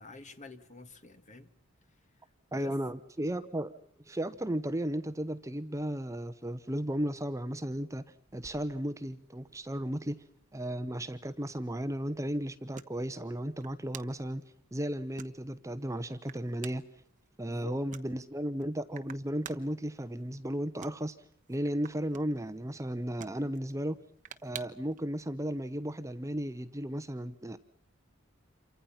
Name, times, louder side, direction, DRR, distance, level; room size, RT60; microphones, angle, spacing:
voice 1, 0.0-1.5 2.5-2.7 17.4-17.8 23.2-23.5, left 2 dB, 35° left, 1.9 m, -49 dB
voice 2, 2.5-3.7 4.0-8.0 8.3-10.2 10.5-14.4 14.7-16.8 17.4-21.2 21.5-24.0 24.4-27.6, equal, 15° right, 0.9 m, -34 dB
sound 1, 8.3-25.0, right 7 dB, 40° right, 1.1 m, -53 dB
28.5 x 24.5 x 5.7 m
head